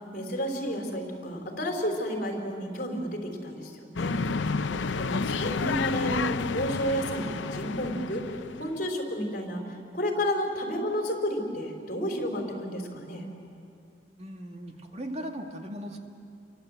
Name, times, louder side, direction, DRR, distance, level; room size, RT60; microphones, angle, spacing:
voice 1, 0.1-4.1 5.0-8.2 8.5-9.7 9.9-13.3, equal, 50° left, 2 dB, 4.6 m, -31 dB
sound 1, 4.0-8.8, left 4 dB, 85° left, 0.7 m, -30 dB
voice 2, 14.2-16.0, equal, 35° right, 3 dB, 2.0 m, -38 dB
29.5 x 24.0 x 8.1 m, 2.5 s
head